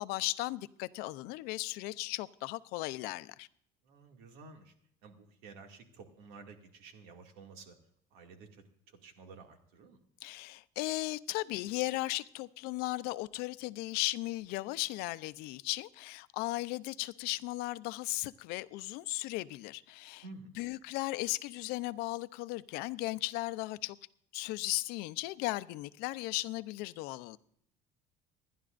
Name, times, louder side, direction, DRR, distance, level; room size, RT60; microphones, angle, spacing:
voice 1, 0.0-3.5 10.2-20.2 20.6-24.0 24.3-27.4, left 19 dB, 75° left, 0.6 m, -36 dB
voice 2, 3.8-4.7 5.0-7.8 8.1-10.0 20.2-20.7, right 4 dB, 85° right, 2.3 m, -52 dB
27.0 x 11.0 x 2.6 m
cardioid pair, 140°, 16 cm